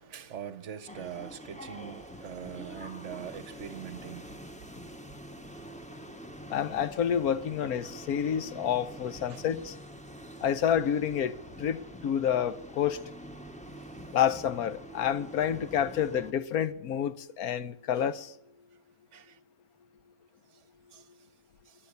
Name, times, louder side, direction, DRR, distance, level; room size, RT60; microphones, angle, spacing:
voice 1, 0.0-4.4 7.8-7.9 9.3-9.4 19.1-19.4 20.9-21.0 21.7-21.8, right 9 dB, 60° right, 1.1 m, -42 dB
sound 1, 0.9-16.3, equal, 5° left, 1.0 m, -45 dB
voice 2, 6.5-9.7 10.4-13.0 14.1-18.3, left 9 dB, 90° left, 1.4 m, -29 dB
20.0 x 10.5 x 6.8 m
omnidirectional pair, 1.5 m